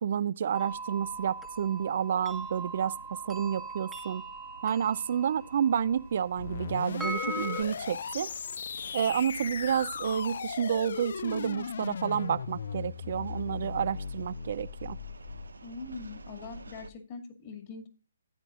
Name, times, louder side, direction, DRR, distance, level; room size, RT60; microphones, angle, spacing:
voice 1, 0.0-2.9 3.2-4.2 4.6-8.3 8.9-15.0, right 8 dB, 50° right, 0.5 m, -30 dB
sound 1, 0.5-7.6, right 1 dB, 5° right, 1.1 m, -40 dB
sound 2, 0.6-16.9, right 2 dB, 80° right, 0.9 m, -52 dB
sound 3, 6.4-15.5, left 6 dB, 60° left, 0.4 m, -37 dB
voice 2, 15.6-17.9, left 4 dB, 35° left, 2.2 m, -42 dB
14.5 x 9.0 x 2.4 m
figure-of-eight pair, 140°, 0 cm